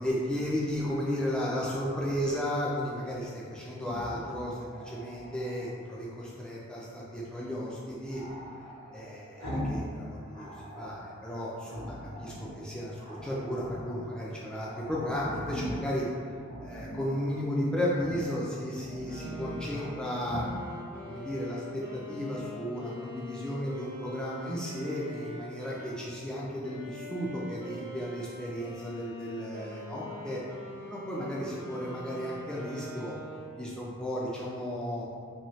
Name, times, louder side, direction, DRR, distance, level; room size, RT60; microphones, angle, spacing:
voice 1, 0.0-8.2 8.9-10.5 10.8-16.1 16.6-20.4 21.0-30.4 30.9-33.1 33.6-35.0, equal, 5° left, -6 dB, 0.3 m, -34 dB
Growling, 3.7-5.7 8.1-9.9 10.2-11.1 11.7-12.6 13.0-14.0 14.3-14.4 14.6-15.9 16.4-17.2 17.9-18.3 18.7-19.9 20.2-20.5, equal, 70° left, 1.0 m, -40 dB
sound 1, 19.0-26.0 26.6-33.8, equal, 40° right, 0.6 m, -44 dB
2.7 x 2.3 x 3.0 m, 2.3 s
head